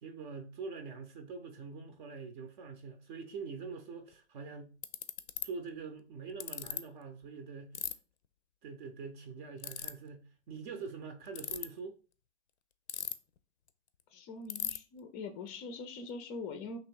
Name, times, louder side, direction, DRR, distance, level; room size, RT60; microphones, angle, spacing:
voice 1, 0.0-4.7 5.4-7.8 8.6-12.0, right 5 dB, 45° right, 0.7 m, -44 dB
Ratchet pawl, 4.1-4.2 4.8-5.4 6.4-6.8 7.7-7.9 9.6-9.9 11.3-11.7 12.9-13.4 13.7-13.8 14.0-14.1 14.5-14.8, left 10 dB, 75° left, 0.5 m, -36 dB
voice 2, 14.1-16.8, left 4 dB, 25° left, 0.4 m, -43 dB
3.0 x 3.0 x 4.5 m
figure-of-eight pair, 100°, 34 cm